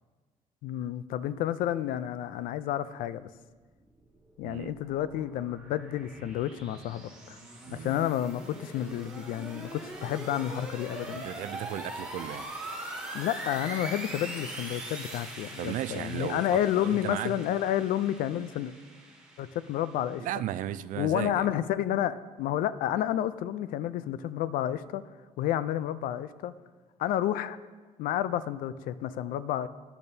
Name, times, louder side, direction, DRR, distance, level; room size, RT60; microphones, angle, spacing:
voice 1, 0.6-3.3 4.4-7.4 7.7-11.2 13.1-18.7 19.4-20.3 21.0-25.0 25.4-26.5 27.0-27.6 28.0-29.7, left 11 dB, 90° left, 15 dB, 0.4 m, -30 dB
sound 1, 4.1-20.2, right 1 dB, 5° right, 2.3 m, -42 dB
voice 2, 4.4-4.8 7.7-8.0 11.1-12.5 15.6-17.4 20.2-21.5, right 12 dB, 70° right, 15 dB, 0.4 m, -35 dB
12.0 x 10.5 x 2.7 m, 1.4 s
cardioid pair, 150°, 14 cm